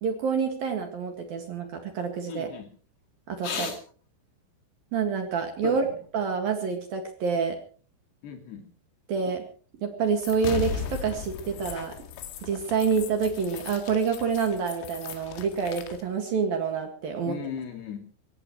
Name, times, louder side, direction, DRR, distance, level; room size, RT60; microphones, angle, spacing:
voice 1, 0.0-2.5 3.3-3.7 4.9-5.8 6.1-7.6 9.1-9.4 9.8-11.9 12.4-17.4, right 5 dB, 55° right, 5 dB, 3.1 m, -27 dB
voice 2, 2.3-2.7 3.4-3.8 5.6-6.0 8.2-8.6 17.2-18.0, left 7 dB, 60° left, 5 dB, 4.2 m, -35 dB
sound 1, 10.2-16.0, left 7 dB, 85° left, 4.8 m, -37 dB
24.0 x 18.0 x 3.1 m, 0.41 s
omnidirectional pair, 5.9 m